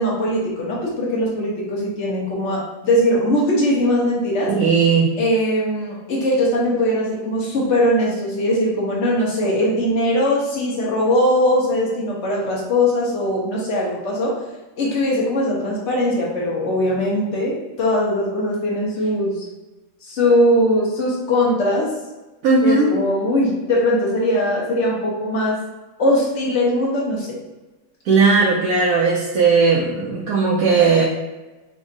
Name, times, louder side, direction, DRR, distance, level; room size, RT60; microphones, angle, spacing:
voice 1, 0.0-4.5 5.2-14.3 14.8-19.4 20.0-21.9 22.6-25.6 26.0-27.4, left 1 dB, 55° left, -4 dB, 1.1 m, -20 dB
voice 2, 4.5-5.1 22.4-22.9 28.0-31.1, right 4 dB, 75° right, -4 dB, 1.0 m, -17 dB
3.5 x 2.1 x 3.7 m, 1.1 s
omnidirectional pair, 1.6 m